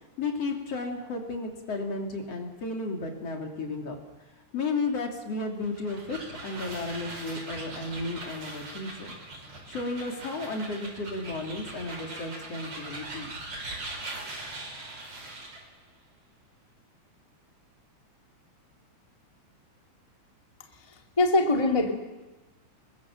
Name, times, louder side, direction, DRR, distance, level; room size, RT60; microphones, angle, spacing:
voice 1, 0.2-4.0 4.5-9.2 9.7-13.3, left 3 dB, 50° left, 1 dB, 4.1 m, -33 dB
sound 1, 5.6-15.7, right 2 dB, 60° right, 6.7 m, -41 dB
voice 2, 20.9-21.9, left 2 dB, 10° left, 2 dB, 2.0 m, -23 dB
27.5 x 23.0 x 7.6 m, 1.1 s
omnidirectional pair, 3.5 m